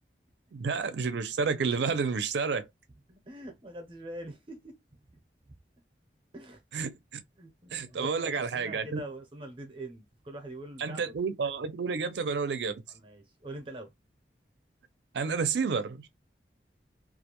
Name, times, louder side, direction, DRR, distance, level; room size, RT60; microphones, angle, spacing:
voice 1, 0.5-2.7 6.7-6.9 7.7-9.0 10.8-12.8 15.1-16.1, right 5 dB, 80° right, 0.4 m, -30 dB
voice 2, 3.1-4.8 6.3-6.6 7.4-11.2 12.9-13.9, right 1 dB, 30° right, 0.6 m, -44 dB
2.4 x 2.1 x 2.9 m
head